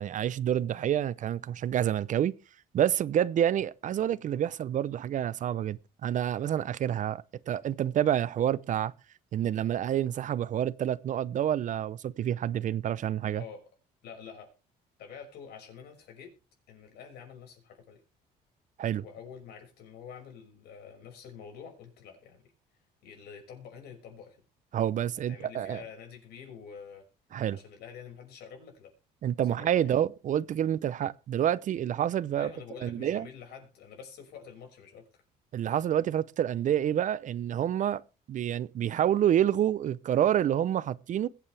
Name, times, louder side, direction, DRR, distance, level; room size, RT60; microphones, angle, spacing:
voice 1, 0.0-2.3 2.7-8.9 9.3-13.4 18.8-19.0 24.7-25.8 27.3-27.6 29.2-32.5 32.8-33.3 35.5-38.0 38.3-41.3, right 10 dB, 50° right, 0.6 m, -28 dB
voice 2, 13.3-13.7 14.0-14.5 15.0-16.3 16.7-18.0 19.0-22.4 23.0-24.4 25.3-27.0 27.5-28.9 29.5-29.9 32.4-35.1, left 7 dB, 75° left, 5.7 m, -47 dB
22.0 x 8.5 x 3.3 m
cardioid pair, 110°, 17 cm